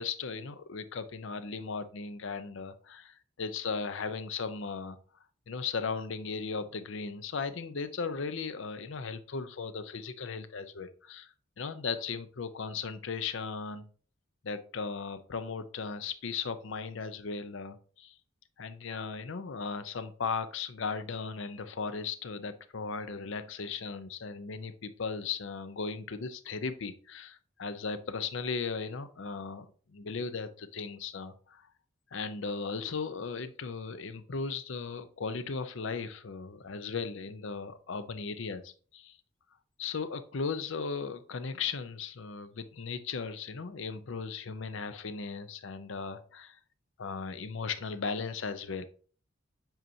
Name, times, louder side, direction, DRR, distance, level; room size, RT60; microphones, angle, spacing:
voice 1, 0.0-5.0 5.5-13.9 14.4-18.1 18.6-31.7 32.1-39.2 39.8-46.6 47.0-48.8, left 5 dB, 70° left, 12 dB, 0.6 m, -37 dB
7.9 x 4.4 x 2.7 m, 0.41 s
head